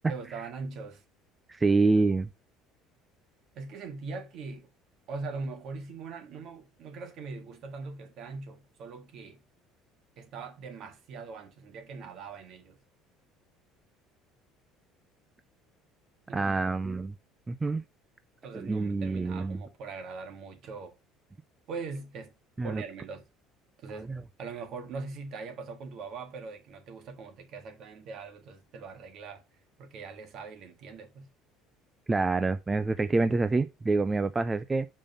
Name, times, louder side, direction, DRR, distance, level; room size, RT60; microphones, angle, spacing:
voice 1, 0.1-1.0 3.5-4.7 5.1-9.4 10.2-12.8 16.3-16.6 18.4-20.9 21.7-22.3 22.6-23.3 23.8-29.4 29.8-31.3, right 4 dB, 55° right, 1.7 m, -41 dB
voice 2, 1.5-2.3 16.3-17.1 17.5-17.8 18.5-19.6 22.6-22.8 24.1-24.2 32.1-34.9, right 3 dB, 15° right, 0.4 m, -27 dB
5.3 x 5.3 x 5.3 m
cardioid pair, 120°, 0 cm